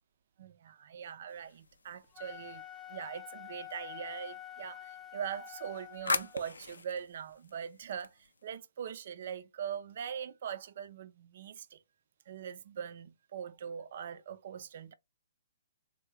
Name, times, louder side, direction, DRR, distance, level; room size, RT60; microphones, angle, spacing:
voice 1, 0.4-2.6 2.9-11.8 12.3-14.9, right 8 dB, 60° right, 0.4 m, -42 dB
sound 1, 1.3-3.0 5.3-8.6, left 3 dB, 85° left, 0.4 m, -40 dB
Wind instrument woodwind instrument, 2.0-6.4, left 12 dB, 15° left, 0.4 m, -47 dB
3.5 x 2.1 x 3.0 m
hypercardioid pair, 130°, 0 cm